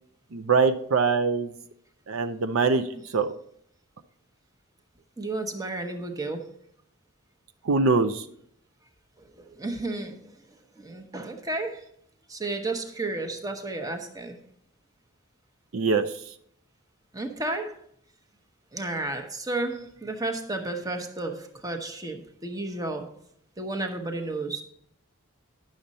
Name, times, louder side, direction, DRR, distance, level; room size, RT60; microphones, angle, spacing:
voice 1, 0.3-1.5 2.1-2.8 3.1-3.3 7.7-8.2 15.7-16.1, right 4 dB, 70° right, 9 dB, 0.5 m, -23 dB
voice 2, 5.2-6.6 9.4-10.3 10.8-11.9 12.3-14.4 17.1-17.8 18.7-23.1 23.6-24.6, right 2 dB, 15° right, 5 dB, 0.9 m, -32 dB
10.0 x 6.4 x 4.1 m, 0.69 s
head